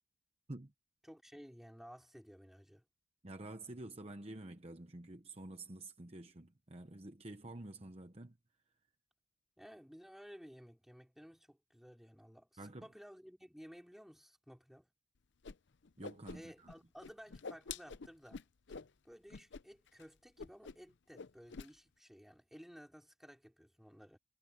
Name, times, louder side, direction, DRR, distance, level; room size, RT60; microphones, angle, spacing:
voice 1, 1.0-2.8 9.6-14.9 16.3-18.4 19.0-24.2, equal, ahead, 3.4 m, -56 dB
voice 2, 3.2-8.4 12.6-12.9 16.0-16.7, right 2 dB, 30° right, 1.0 m, -49 dB
Whoosh swoosh swish, 15.4-15.5 15.8-16.7 17.0-18.9 19.3-19.6 19.9-20.0 20.4-20.9 21.1-21.7, left 5 dB, 55° left, 0.6 m, -47 dB
head